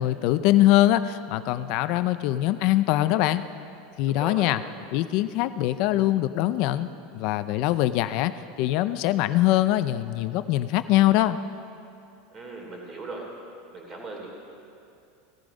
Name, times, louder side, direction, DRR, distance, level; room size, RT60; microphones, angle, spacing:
voice 1, 0.0-3.4 4.0-4.6 4.9-8.3 8.6-11.4, left 15 dB, 50° left, 12 dB, 0.5 m, -23 dB
voice 2, 4.1-4.5 12.3-13.2 13.7-14.3, right 2 dB, 20° right, -1 dB, 3.1 m, -38 dB
17.0 x 14.0 x 5.1 m, 2.6 s
supercardioid pair, 165°, 0 cm